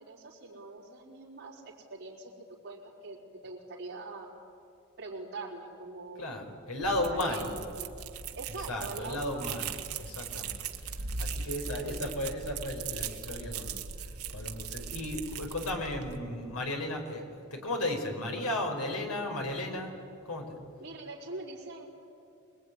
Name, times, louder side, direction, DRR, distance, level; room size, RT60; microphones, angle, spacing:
voice 1, 0.0-2.3 2.6-4.3 5.0-6.4 6.9-8.0 8.4-9.7 11.7-12.1 20.8-21.9, right 3 dB, 45° right, -6 dB, 4.3 m, -43 dB
voice 2, 6.2-7.5 8.5-9.7 10.0-10.6 11.2-13.8 14.3-17.2 17.5-19.9 20.2-20.6, left 1 dB, 80° left, 3 dB, 4.7 m, -34 dB
sound 1, 6.8-16.2, right 6 dB, 80° right, 1.6 m, -39 dB
25.5 x 20.5 x 9.7 m, 2.7 s
head